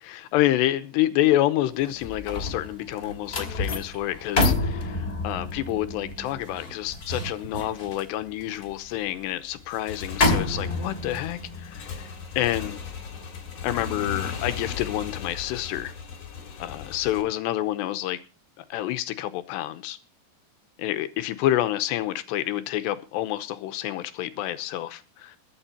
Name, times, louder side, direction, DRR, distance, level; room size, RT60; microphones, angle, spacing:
voice 1, 0.1-12.1 12.4-12.8 13.6-15.9 16.6-18.2 18.6-20.0 20.8-25.4, left 14 dB, 80° left, 3.0 m, -28 dB
sound 1, 1.8-15.1 15.5-15.8, left 2 dB, 25° left, 2.4 m, -30 dB
Motorcycle / Engine, 9.6-17.2, left 6 dB, 45° left, 2.9 m, -37 dB
22.0 x 7.7 x 4.4 m
omnidirectional pair, 5.1 m